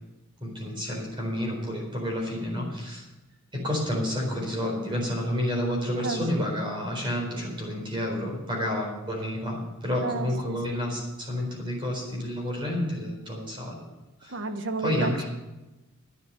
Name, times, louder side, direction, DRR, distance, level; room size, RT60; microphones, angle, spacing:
voice 1, 0.4-3.1 3.5-13.8 14.2-14.4 14.8-15.2, left 1 dB, 20° right, -1 dB, 4.1 m, -30 dB
voice 2, 6.0-6.5 10.0-10.6 14.3-15.2, right 3 dB, 55° right, 8 dB, 1.1 m, -32 dB
11.5 x 9.6 x 7.0 m, 1.0 s
head